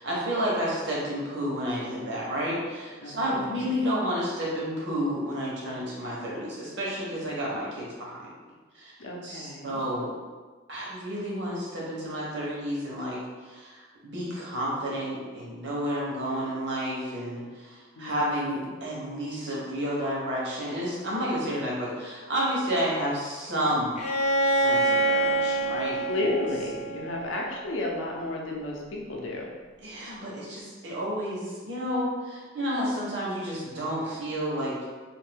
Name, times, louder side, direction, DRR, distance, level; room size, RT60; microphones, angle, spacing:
voice 1, 0.0-8.3 8.7-8.9 9.2-10.1 10.7-24.0 24.4-26.1 29.8-34.8, equal, 60° right, -5 dB, 0.9 m, -31 dB
voice 2, 3.0-3.9 9.0-9.8 18.0-18.7 26.1-29.5, left 2 dB, 80° left, -1 dB, 0.6 m, -33 dB
Bowed string instrument, 24.0-27.7, right 2 dB, 35° left, 0.4 m, -26 dB
2.7 x 2.5 x 3.4 m, 1.4 s
head